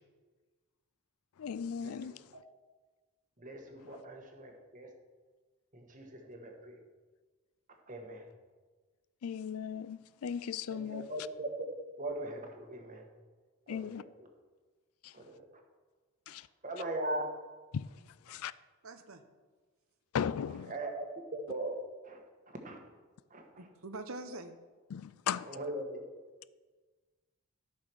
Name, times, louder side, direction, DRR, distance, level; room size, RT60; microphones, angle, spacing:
voice 1, 1.4-2.4 3.8-4.0 9.2-11.1 13.7-14.0 15.0-15.2 16.3-16.5 17.7-18.5 20.1-20.7 24.9-25.6, left 7 dB, 80° left, 0.4 m, -37 dB
voice 2, 3.4-4.9 5.7-6.8 7.9-8.3 10.7-11.5 12.0-13.0 13.7-14.0 15.1-15.4 16.6-17.3 20.7-21.0 21.3-21.8 22.0-22.2 22.5-22.8 23.3-23.4 25.5-26.0, right 1 dB, 35° right, 1.5 m, -40 dB
voice 3, 18.8-19.2 23.6-24.6, right 2 dB, 70° right, 0.9 m, -44 dB
13.5 x 6.2 x 6.2 m
head